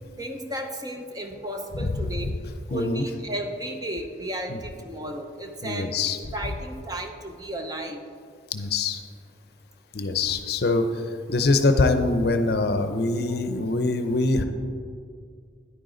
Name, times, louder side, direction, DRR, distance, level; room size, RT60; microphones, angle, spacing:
voice 1, 0.2-2.3 2.7-5.9 6.3-8.0 13.3-13.4, right 1 dB, 20° right, 4 dB, 0.7 m, -34 dB
voice 2, 1.8-2.4 2.7-3.1 4.5-4.6 5.6-6.2 8.5-9.0 9.9-14.4, left 3 dB, 55° left, 8 dB, 0.6 m, -24 dB
10.0 x 9.2 x 3.9 m, 2.2 s
head